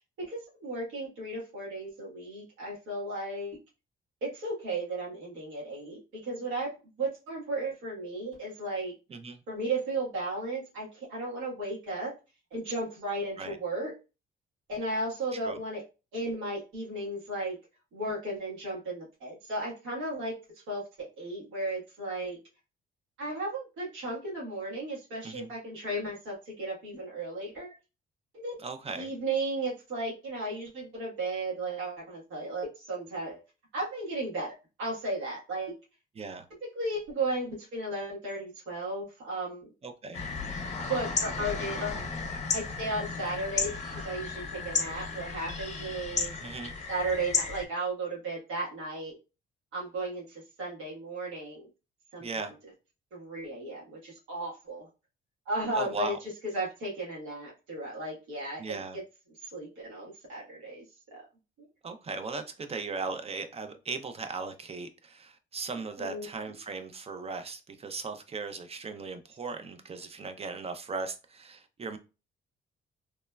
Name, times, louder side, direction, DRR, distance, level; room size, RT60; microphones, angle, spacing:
voice 1, 0.2-3.6 4.2-8.9 9.5-12.1 12.5-13.9 14.7-15.8 16.1-17.6 17.9-22.4 23.2-27.8 28.3-28.6 28.9-33.4 33.7-35.7 36.6-39.7 40.9-42.2 42.5-43.8 44.0-46.3 46.9-49.2 49.7-51.7 52.1-52.5 53.1-54.9 55.5-56.1 56.5-59.0 59.4-60.8 61.1-61.2 65.8-66.3, right 2 dB, 85° right, 1.3 m, -35 dB
voice 2, 9.1-9.4 13.4-13.6 15.4-15.6 25.2-25.5 28.6-29.1 36.2-36.4 39.8-40.2 46.4-46.7 52.2-52.5 55.7-56.2 58.6-59.0 61.8-72.0, right 4 dB, 30° right, 0.4 m, -38 dB
sound 1, 40.1-47.7, left 4 dB, 35° left, 0.6 m, -34 dB
3.1 x 2.0 x 2.2 m
cardioid pair, 90°, 20 cm